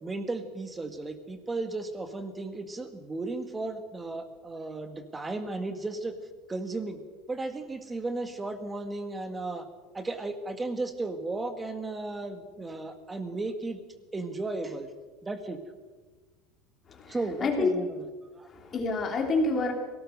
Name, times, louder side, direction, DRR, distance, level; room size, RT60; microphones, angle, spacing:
voice 1, 0.0-6.2 6.5-7.0 7.3-9.7 9.9-13.8 14.1-14.9 15.2-15.6 17.1-17.9 18.3-18.5, right 2 dB, 10° right, 8 dB, 1.8 m, -35 dB
voice 2, 16.9-17.7 18.5-19.7, left 3 dB, 25° left, 2 dB, 3.5 m, -28 dB
23.0 x 18.0 x 6.7 m, 1.3 s
cardioid pair, 165°, 0 cm